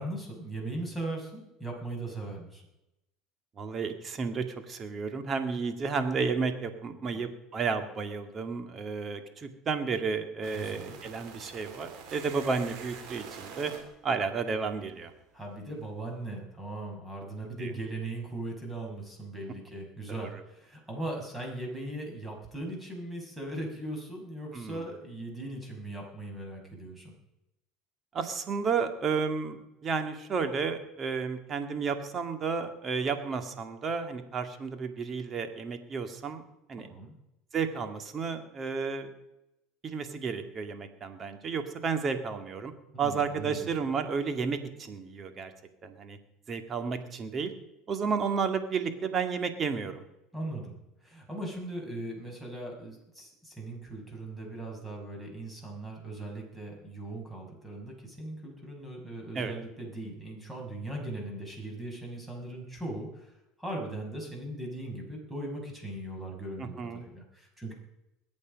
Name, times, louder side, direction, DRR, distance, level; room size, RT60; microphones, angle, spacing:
voice 1, 0.0-2.6 7.1-7.2 10.5-11.0 15.3-27.1 36.8-37.2 42.9-43.6 50.3-50.8 51.0-63.3 63.6-67.7, right 1 dB, 10° right, 1 dB, 5.9 m, -39 dB
voice 2, 3.6-13.7 14.0-15.1 17.6-17.7 20.1-20.4 24.5-24.8 28.1-36.4 36.7-36.9 37.5-39.1 39.8-42.7 43.0-45.5 45.8-46.2 46.5-47.5 47.9-50.0 59.3-59.5 66.6-67.0, right 5 dB, 35° right, 8 dB, 2.1 m, -32 dB
sound 1, 10.4-15.3, right 6 dB, 60° right, 3.0 m, -47 dB
21.5 x 8.6 x 5.3 m, 0.89 s
hypercardioid pair, 90°, 0 cm